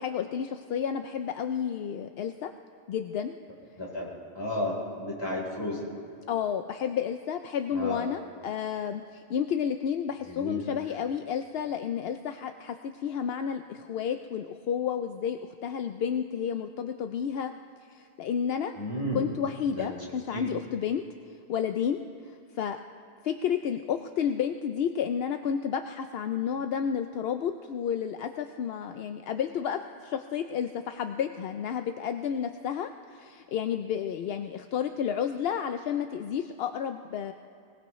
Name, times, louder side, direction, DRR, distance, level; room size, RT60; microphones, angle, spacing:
voice 1, 0.0-2.5 2.9-3.3 6.3-17.5 17.9-18.7 19.1-21.0 21.5-22.8 23.2-37.3, left 8 dB, 75° left, 7 dB, 0.8 m, -31 dB
voice 2, 3.8-4.1 4.3-5.9 7.7-8.1 10.3-10.6 18.8-19.3 19.7-19.9 20.3-20.5, left 1 dB, 25° left, -4 dB, 3.9 m, -33 dB
24.5 x 18.5 x 3.1 m, 2.3 s
omnidirectional pair, 1.0 m